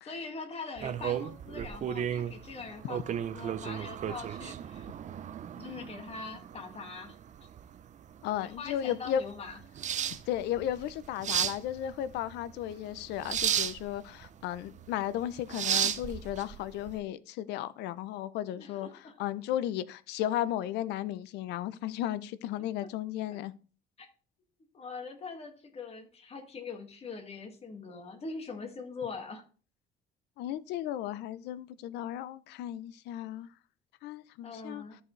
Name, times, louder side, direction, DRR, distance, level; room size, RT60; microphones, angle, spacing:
voice 1, 0.0-4.9 5.5-7.2 8.4-9.6 18.6-19.2 23.3-23.4 24.0-24.1 24.7-29.4 34.4-35.0, left 4 dB, 35° left, 2.0 m, -42 dB
sound 1, 0.8-17.0, right 9 dB, 45° right, 0.6 m, -35 dB
voice 2, 8.2-9.2 10.3-18.9 19.2-23.5 30.4-33.5 34.0-34.8, left 11 dB, 85° left, 0.6 m, -34 dB
13.5 x 4.8 x 3.2 m
cardioid pair, 110°, 17 cm